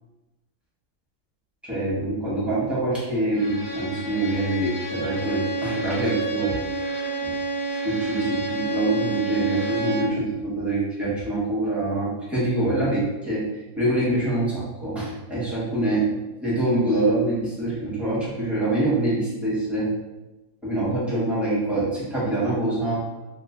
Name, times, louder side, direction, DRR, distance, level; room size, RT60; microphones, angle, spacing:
voice 1, 1.6-6.6 7.2-7.3 7.7-13.5 13.8-16.1 16.4-19.9 20.6-23.0, right 2 dB, ahead, -9 dB, 0.3 m, -25 dB
Bowed string instrument, 3.3-10.2, right 2 dB, 40° right, 1.2 m, -30 dB
3.0 x 2.1 x 3.5 m, 1.1 s
omnidirectional pair, 1.7 m